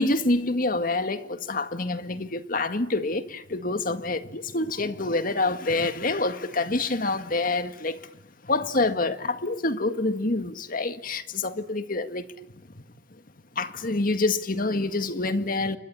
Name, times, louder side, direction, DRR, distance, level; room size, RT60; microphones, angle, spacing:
voice 1, 0.0-8.0 8.5-12.3 13.6-15.8, left 2 dB, 50° left, 1.8 m, -26 dB
29.5 x 23.5 x 8.6 m
head